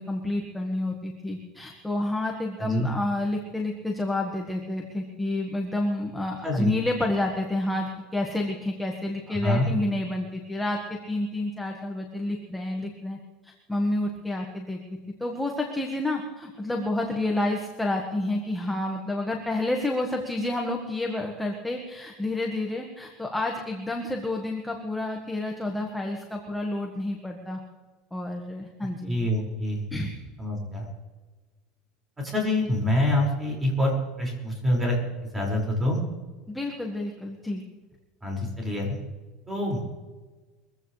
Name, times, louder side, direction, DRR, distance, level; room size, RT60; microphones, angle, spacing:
voice 1, 0.0-13.2 13.4-27.6 28.1-29.2 29.9-30.1 36.5-37.6, left 2 dB, 5° left, 0 dB, 1.6 m, -29 dB
voice 2, 9.3-9.7 29.1-29.8 30.4-30.9 32.2-33.9 34.2-35.0 35.2-36.0 38.2-39.0 39.5-39.8, left 1 dB, 10° right, -1 dB, 5.5 m, -26 dB
23.5 x 15.5 x 3.3 m, 1.3 s
supercardioid pair, 145°, 0 cm